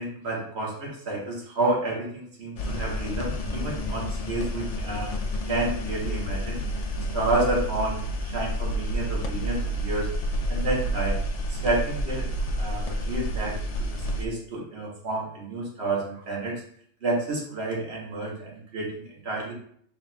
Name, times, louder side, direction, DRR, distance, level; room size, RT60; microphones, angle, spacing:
voice 1, 0.0-5.2 5.5-6.6 7.1-10.1 10.5-11.2 11.5-16.5 17.0-19.5, right 2 dB, 60° right, -2 dB, 1.4 m, -30 dB
sound 1, 2.6-14.3, equal, 85° left, 0.3 m, -29 dB
3.8 x 2.3 x 4.0 m, 0.62 s
omnidirectional pair, 1.2 m